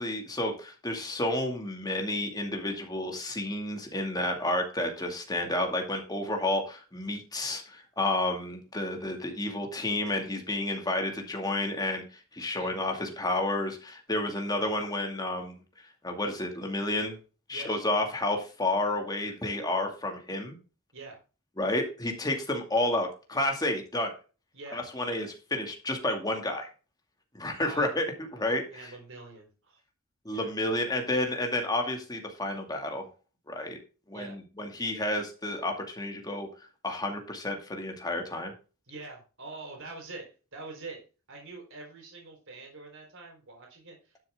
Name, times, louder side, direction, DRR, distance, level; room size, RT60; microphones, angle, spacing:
voice 1, 0.0-12.0 12.3-15.5 16.0-17.2 17.5-20.6 21.6-24.1 24.7-26.7 27.3-28.1 28.3-28.9 30.2-33.1 33.5-33.8 34.1-36.5 36.8-38.5, left 1 dB, 20° left, 3 dB, 2.3 m, -30 dB
voice 2, 27.6-28.0 28.4-29.8 30.3-30.5 34.1-34.4 38.9-41.0 41.3-44.2, right 3 dB, 60° right, 1 dB, 4.1 m, -45 dB
12.0 x 7.0 x 3.7 m, 0.34 s
head